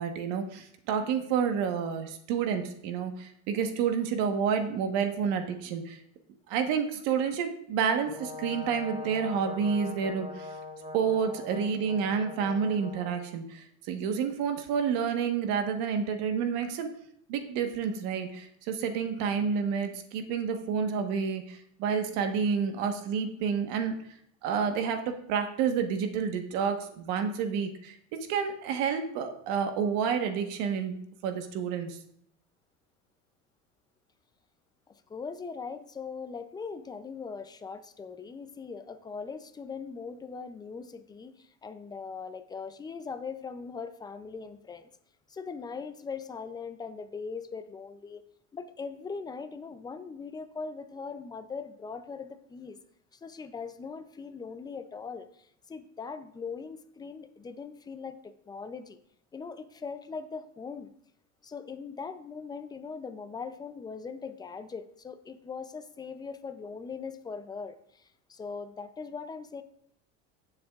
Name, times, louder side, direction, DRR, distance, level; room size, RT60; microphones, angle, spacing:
voice 1, 0.0-6.0 6.5-10.5 10.9-16.9 17.3-23.9 24.4-28.0 28.3-32.0, right 6 dB, 70° right, 6 dB, 1.3 m, -29 dB
Brass instrument, 8.0-13.2, left 3 dB, 20° right, 3.0 m, -42 dB
voice 2, 34.9-44.9 45.3-48.2 48.5-52.8 53.1-59.0 59.3-60.9 61.4-69.6, left 5 dB, 10° left, 10 dB, 0.4 m, -40 dB
16.0 x 7.3 x 2.4 m, 0.69 s
cardioid pair, 140°, 35 cm